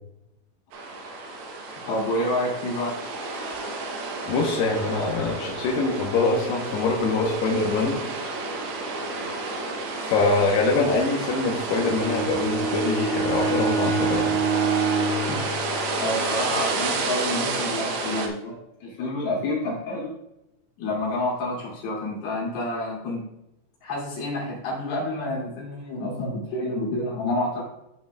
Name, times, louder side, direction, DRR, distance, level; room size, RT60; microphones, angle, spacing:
sound 1, 0.7-18.3, right 3 dB, 90° right, 2.1 m, -30 dB
voice 1, 1.9-3.0 15.3-15.5 16.0-18.5 18.8-20.1 20.8-23.3 23.8-27.6, left 1 dB, 55° left, -5 dB, 4.0 m, -28 dB
voice 2, 4.3-8.0 10.0-14.4, left 3 dB, 75° left, -2 dB, 2.5 m, -24 dB
Bowed string instrument, 11.7-16.3, right 5 dB, 70° right, 2.0 m, -27 dB
13.5 x 5.4 x 2.3 m, 0.90 s
omnidirectional pair, 5.8 m